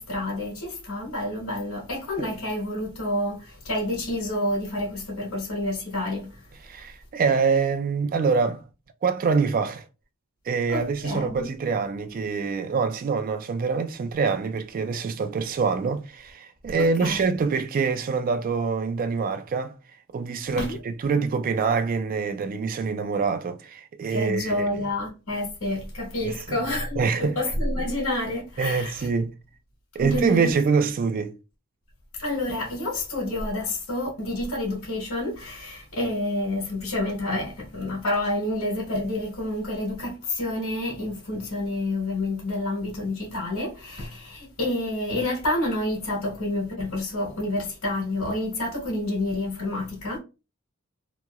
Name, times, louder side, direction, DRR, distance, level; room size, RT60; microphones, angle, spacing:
voice 1, 0.0-6.5 10.7-11.5 16.8-17.3 20.5-20.8 24.1-29.1 30.0-30.5 32.2-50.2, left 1 dB, 90° left, 1.4 m, -29 dB
voice 2, 6.6-8.6 9.0-9.8 10.5-19.7 20.1-24.7 26.2-26.4 27.0-27.3 28.6-29.3 30.0-31.4, right 5 dB, 40° right, 0.3 m, -25 dB
2.9 x 2.8 x 2.3 m
head